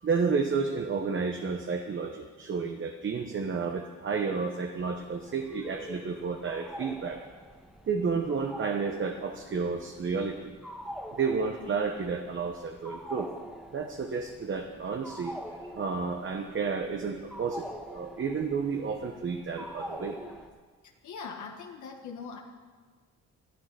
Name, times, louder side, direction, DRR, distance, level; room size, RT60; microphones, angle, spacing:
voice 1, 0.0-7.2 7.9-10.5 11.1-13.3 13.7-15.4 15.7-20.2, right 5 dB, 40° right, 4 dB, 1.1 m, -31 dB
sound 1, 4.8-20.5, equal, ahead, 1.4 m, -45 dB
voice 2, 20.8-22.4, left 5 dB, 70° left, 1 dB, 1.6 m, -41 dB
13.0 x 11.0 x 5.6 m, 1.5 s
cardioid pair, 90°, 30 cm